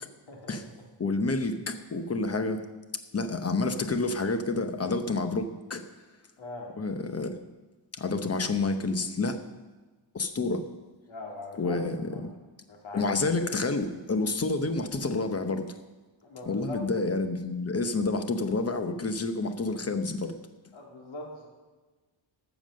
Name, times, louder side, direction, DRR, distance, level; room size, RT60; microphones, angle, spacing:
voice 1, 0.3-0.6 6.4-6.7 11.1-11.8 12.1-12.3 12.7-13.1 16.2-16.8 20.7-21.5, left 2 dB, 75° left, -1 dB, 2.8 m, -41 dB
voice 2, 1.0-2.6 3.1-5.8 6.8-7.3 7.9-9.4 10.1-10.7 11.6-12.3 12.9-15.8 16.5-20.4, left 3 dB, 30° left, 8 dB, 0.9 m, -29 dB
13.0 x 7.2 x 6.4 m, 1.3 s
wide cardioid pair, 155°, 47 cm